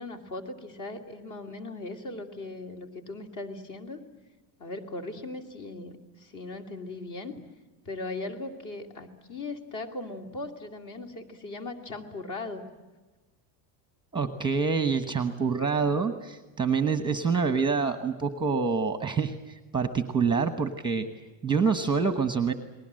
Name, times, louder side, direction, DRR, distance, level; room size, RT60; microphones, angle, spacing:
voice 1, 0.0-4.0 4.6-7.4 7.8-12.6, left 2 dB, 40° left, 6 dB, 3.0 m, -38 dB
voice 2, 14.1-21.1 21.4-22.5, right 5 dB, 10° right, 9 dB, 1.1 m, -26 dB
30.0 x 20.5 x 7.7 m, 1.2 s
cardioid pair, 160°, 50 cm